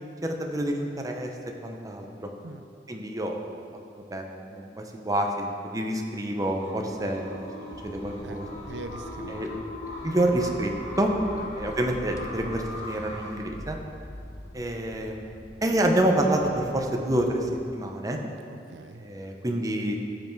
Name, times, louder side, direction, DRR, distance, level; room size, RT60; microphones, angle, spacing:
voice 1, 0.2-1.3 1.6-2.3 2.9-3.4 4.1-4.2 4.5-7.3 7.8-8.5 9.3-9.5 10.0-11.1 11.6-13.8 14.5-18.2 19.0-20.0, right 1 dB, 20° right, 2 dB, 0.8 m, -27 dB
sound 1, 6.4-13.3, left 2 dB, 35° left, 1.9 m, -39 dB
sound 2, 7.7-17.7, left 1 dB, 20° left, 0.6 m, -45 dB
voice 2, 8.2-9.4 11.4-11.5 18.5-19.1, right 3 dB, 80° right, 8 dB, 0.5 m, -42 dB
14.0 x 5.5 x 4.6 m, 2.5 s
head